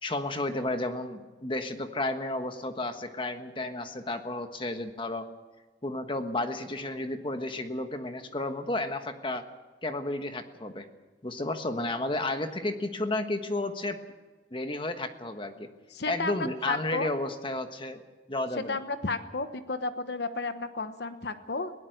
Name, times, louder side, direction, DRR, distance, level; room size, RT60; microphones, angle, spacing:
voice 1, 0.0-5.3 5.8-9.4 9.8-10.9 11.2-14.0 14.5-15.7 16.1-18.0 18.3-18.8, left 2 dB, 25° left, 7 dB, 1.4 m, -32 dB
voice 2, 15.9-17.1 18.6-21.7, left 3 dB, 60° left, 10 dB, 1.1 m, -33 dB
21.0 x 17.5 x 7.9 m, 1.2 s
head